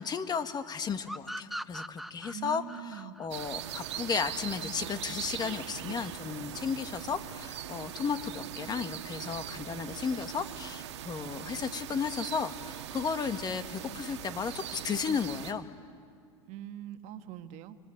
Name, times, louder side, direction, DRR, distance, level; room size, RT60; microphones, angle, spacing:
voice 1, 0.0-2.6 3.0-15.7, left 6 dB, 30° left, 9 dB, 1.5 m, -34 dB
sound 1, 1.1-4.4, equal, ahead, 0.6 m, -41 dB
voice 2, 2.3-3.2 16.5-17.8, right 11 dB, 55° right, 8 dB, 1.6 m, -42 dB
sound 2, 3.3-15.5, right 10 dB, 85° right, 1.6 m, -41 dB
25.0 x 23.5 x 9.0 m, 2.1 s
hypercardioid pair, 100°, 14 cm